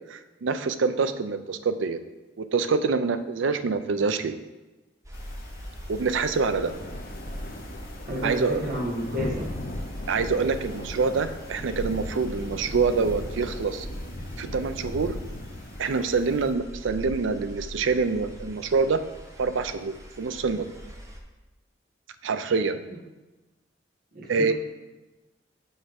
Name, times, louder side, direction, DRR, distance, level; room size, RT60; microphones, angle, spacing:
voice 1, 0.1-2.0 2.4-4.4 5.9-6.7 8.2-8.6 10.1-13.9 14.4-15.1 15.8-19.0 19.4-20.7 22.2-22.8 24.3-24.5, right 4 dB, 90° right, 11 dB, 0.5 m, -26 dB
sound 1, 5.0-21.2, equal, 15° right, 0.8 m, -42 dB
sound 2, 5.1-16.5, left 1 dB, 50° left, 0.8 m, -38 dB
voice 2, 8.1-9.5 24.1-24.5, equal, 50° right, -3 dB, 1.5 m, -31 dB
5.5 x 4.8 x 5.8 m, 1.1 s
head